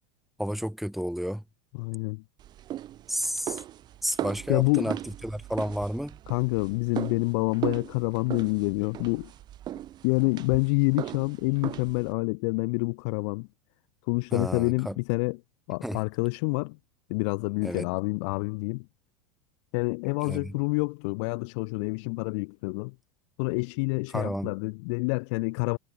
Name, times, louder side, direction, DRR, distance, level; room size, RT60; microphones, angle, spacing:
voice 1, 0.4-1.4 3.1-3.6 4.0-6.2 14.3-15.0 15.8-16.0 17.6-17.9 20.2-20.5 24.1-24.5, equal, ahead, 1.1 m, -31 dB
voice 2, 1.8-2.2 4.5-4.9 6.3-9.3 10.0-13.5 14.1-15.4 15.7-16.8 17.1-18.8 19.7-22.9 23.4-25.8, left 31 dB, 55° left, 0.5 m, -27 dB
sound 1, 2.4-12.1, right 12 dB, 25° right, 0.3 m, -38 dB
supercardioid pair, 135°, 18 cm